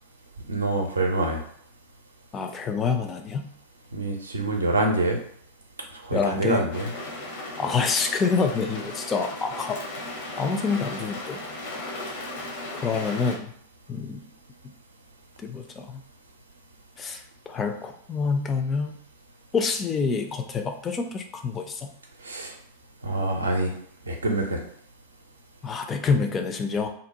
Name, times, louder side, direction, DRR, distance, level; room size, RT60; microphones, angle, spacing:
voice 1, 0.5-1.4 3.9-5.2 6.0-6.9 22.2-22.5 23.0-23.7 24.1-24.6, right 2 dB, 75° right, 2 dB, 0.5 m, -25 dB
voice 2, 2.3-3.5 6.1-6.6 7.6-9.8 10.4-11.4 12.7-13.5 13.9-14.2 15.4-16.0 17.0-19.0 19.5-21.9 25.6-26.9, left 5 dB, 25° left, 5 dB, 0.4 m, -27 dB
sound 1, 6.7-13.4, left 2 dB, 55° left, 0.7 m, -36 dB
2.6 x 2.1 x 2.8 m, 0.64 s
figure-of-eight pair, 90°, 0 cm